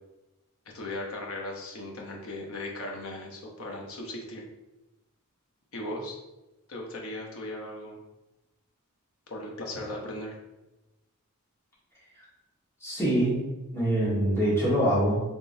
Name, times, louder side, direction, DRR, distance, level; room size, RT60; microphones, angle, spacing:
voice 1, 0.7-4.4 5.7-6.2 6.7-8.0 9.3-10.3, left 1 dB, 70° left, -1 dB, 0.8 m, -37 dB
voice 2, 12.8-13.4 13.7-15.2, right 1 dB, 10° left, -8 dB, 1.4 m, -24 dB
3.7 x 3.2 x 2.6 m, 1.0 s
head